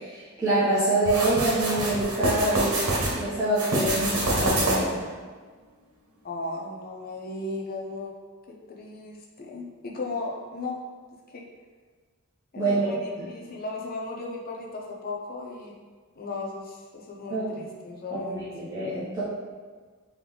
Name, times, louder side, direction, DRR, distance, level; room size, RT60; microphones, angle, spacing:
voice 1, 0.0-5.1 12.6-12.9 17.3-17.7 18.1-19.2, right 2 dB, 15° right, -12 dB, 0.8 m, -26 dB
sound 1, 1.1-3.1 3.5-5.0, right 2 dB, 75° right, 1.1 m, -26 dB
voice 2, 6.2-8.1 8.5-10.8 11.3-11.4 12.5-15.7 16.2-18.5, left 2 dB, 45° left, -1 dB, 0.6 m, -36 dB
3.8 x 3.1 x 3.4 m, 1.5 s
head